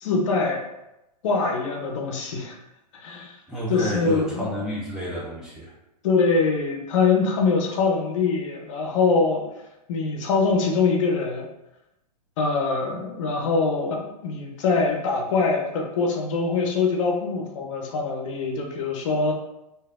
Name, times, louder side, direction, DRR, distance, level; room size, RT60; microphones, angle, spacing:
voice 1, 0.0-0.6 1.2-2.6 2.9-3.3 3.7-4.5 6.0-9.4 9.9-11.5 12.4-19.3, left 4 dB, 50° left, 1 dB, 0.7 m, -23 dB
voice 2, 3.5-5.7, equal, 5° right, -8 dB, 0.5 m, -30 dB
3.2 x 2.6 x 2.4 m, 0.90 s
hypercardioid pair, 125°, 21 cm